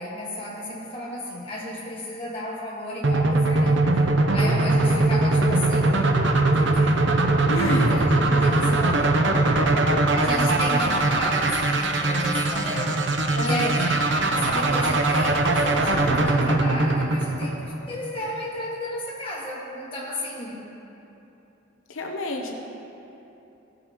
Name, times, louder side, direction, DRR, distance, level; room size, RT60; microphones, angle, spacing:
voice 1, 0.0-3.8 4.3-6.1 6.6-7.1 7.6-9.3 10.1-13.0 13.4-20.6, left 1 dB, 25° left, -5 dB, 1.8 m, -33 dB
sound 1, 3.0-18.0, right 2 dB, 65° right, 0.8 m, -21 dB
voice 2, 7.5-7.9 8.8-9.0 9.6-10.1 10.6-10.7 13.3-13.8 21.9-22.5, left 1 dB, 85° left, 1 dB, 0.8 m, -30 dB
16.0 x 7.9 x 3.0 m, 2.9 s
head